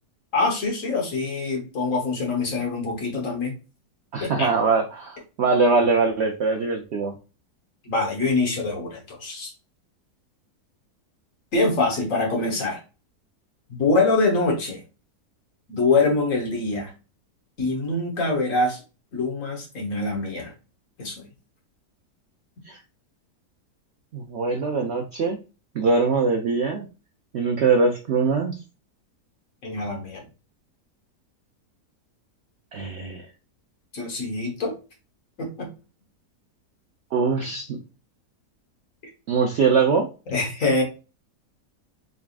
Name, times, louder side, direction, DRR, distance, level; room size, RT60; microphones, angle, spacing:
voice 1, 0.3-3.5 4.2-4.5 7.8-9.5 11.5-12.8 13.7-14.8 15.7-16.9 17.6-18.8 19.1-20.5 21.0-21.2 29.6-30.2 33.9-34.7 35.4-35.7 40.3-40.8, left 3 dB, 55° left, 1 dB, 1.5 m, -24 dB
voice 2, 4.1-7.1 22.7-22.8 24.1-25.4 25.7-26.9 27.3-28.6 32.7-33.3 37.1-37.8 39.3-40.1, right 4 dB, 75° right, 3 dB, 0.6 m, -22 dB
4.0 x 3.5 x 2.4 m, 0.31 s
omnidirectional pair, 1.8 m